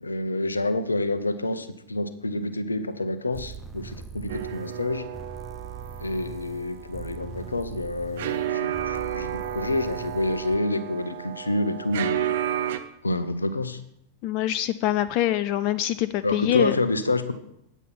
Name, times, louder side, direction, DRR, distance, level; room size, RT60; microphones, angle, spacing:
voice 1, 0.0-5.1 6.0-12.2 13.0-13.8 16.2-17.3, left 2 dB, 80° left, 12 dB, 0.8 m, -28 dB
sound 1, 3.3-10.6, right 6 dB, 10° right, 0.6 m, -41 dB
sound 2, 4.3-12.8, right 10 dB, 55° right, 0.7 m, -32 dB
voice 2, 14.2-16.8, left 13 dB, 45° left, 12 dB, 0.4 m, -24 dB
9.2 x 8.2 x 5.6 m, 0.79 s
figure-of-eight pair, 90°, 0 cm